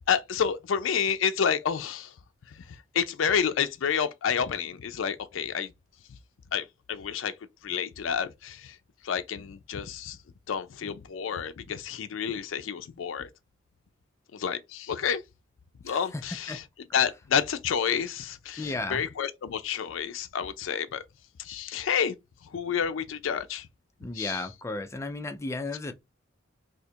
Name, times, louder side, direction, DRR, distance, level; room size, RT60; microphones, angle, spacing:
voice 1, 0.1-2.1 2.5-2.6 2.9-5.7 6.5-7.3 7.6-8.8 9.0-10.2 10.5-13.3 14.3-15.2 15.8-16.6 16.9-21.0 21.4-22.2 22.5-23.7 24.1-24.4, left 7 dB, 80° left, 0.4 m, -29 dB
voice 2, 15.9-16.6 18.6-19.0 24.0-25.9, left 2 dB, 15° left, 0.4 m, -34 dB
2.8 x 2.4 x 4.2 m
head